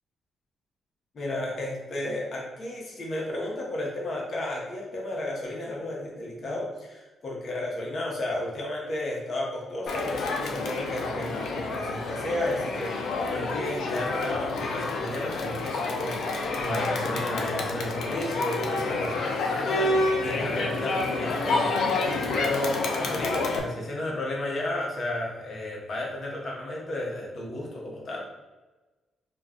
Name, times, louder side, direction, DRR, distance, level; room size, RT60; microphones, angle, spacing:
voice 1, 1.1-28.2, left 1 dB, 50° left, -2 dB, 0.8 m, -33 dB
Crowd, 9.9-23.6, left 3 dB, 70° left, 0.4 m, -29 dB
2.3 x 2.3 x 3.6 m, 1.2 s
cardioid pair, 95°, 0 cm